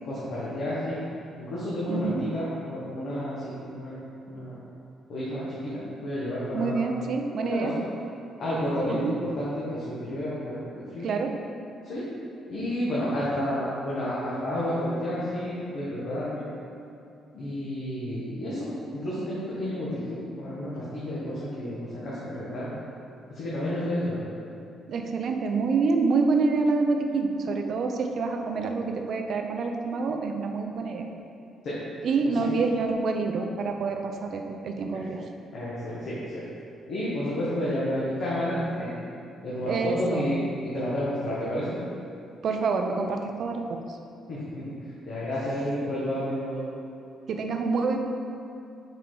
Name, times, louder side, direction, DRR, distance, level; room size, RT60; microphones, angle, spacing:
voice 1, 0.0-1.0 1.4-3.9 4.3-4.6 5.1-6.9 7.4-7.7 8.4-10.6 10.9-11.1 11.9-12.1 12.5-16.5 17.3-22.7 23.3-24.2 31.6-31.8 32.4-32.5 34.9-35.0 35.5-36.4 36.9-38.9 39.4-41.8 44.3-46.7, equal, 60° left, -9 dB, 1.2 m, -31 dB
voice 2, 1.9-2.2 6.5-7.7 8.9-9.1 11.0-11.3 19.6-19.7 24.9-31.1 32.0-35.2 39.7-40.4 42.4-44.0 47.3-48.0, right 4 dB, 55° right, 4 dB, 0.5 m, -27 dB
5.7 x 4.5 x 3.8 m, 2.6 s
cardioid pair, 140°, 0 cm